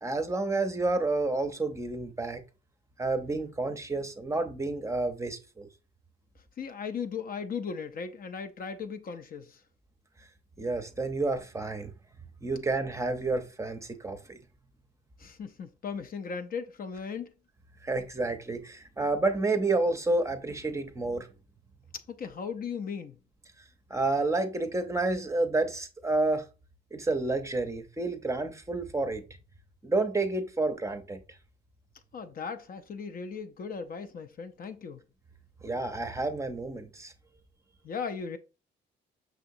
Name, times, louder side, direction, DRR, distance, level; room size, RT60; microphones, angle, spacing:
voice 1, 0.0-2.4 3.0-5.7 10.6-11.9 12.4-14.4 17.8-21.3 23.9-26.5 26.9-29.2 29.8-31.2 35.6-37.1, right 2 dB, 15° right, 0.6 m, -30 dB
voice 2, 6.6-9.6 15.2-17.3 22.1-23.2 32.1-35.0 37.8-38.4, left 6 dB, 45° left, 0.5 m, -37 dB
6.0 x 2.8 x 2.6 m
cardioid pair, 90°, 20 cm